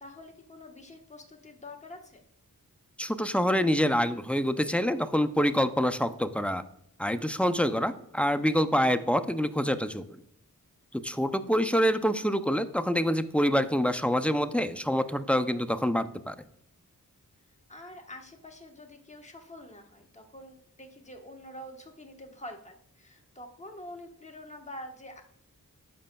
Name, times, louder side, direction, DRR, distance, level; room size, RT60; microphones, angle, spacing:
voice 1, 0.0-2.2 7.6-8.0 17.7-25.2, left 1 dB, 20° left, 2 dB, 1.1 m, -46 dB
voice 2, 3.0-6.6 7.0-10.0 10.9-16.3, equal, 5° left, 10 dB, 0.4 m, -26 dB
13.0 x 5.0 x 2.2 m, 0.73 s
wide cardioid pair, 60°, 35 cm